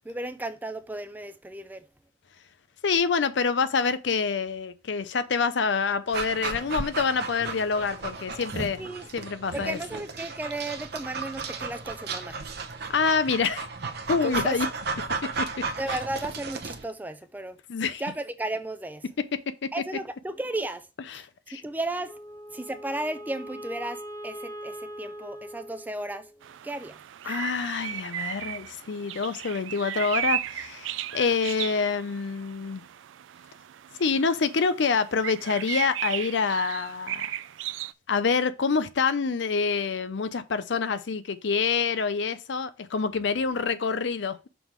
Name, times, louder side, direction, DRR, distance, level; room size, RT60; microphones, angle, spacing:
voice 1, 0.0-1.9 8.8-9.1 9.5-12.4 14.2-14.6 15.8-17.6 18.0-19.0 19.7-20.9 21.1-21.2 21.5-22.1 22.5-26.3 26.6-27.0 27.2-27.4, right 2 dB, 10° right, 0.4 m, -34 dB
voice 2, 2.8-8.8 9.1-9.8 12.9-13.6 14.1-14.7 15.4-16.0 17.7-18.0 21.1-21.6 27.2-32.8 34.0-37.3 38.1-44.5, left 5 dB, 65° left, 0.5 m, -26 dB
Dog, 6.1-16.8, right 4 dB, 60° right, 0.8 m, -34 dB
Wind instrument woodwind instrument, 22.0-26.5, equal, 25° left, 1.9 m, -41 dB
sound 1, 26.4-37.9, right 12 dB, 85° right, 0.3 m, -35 dB
6.1 x 3.6 x 4.6 m
head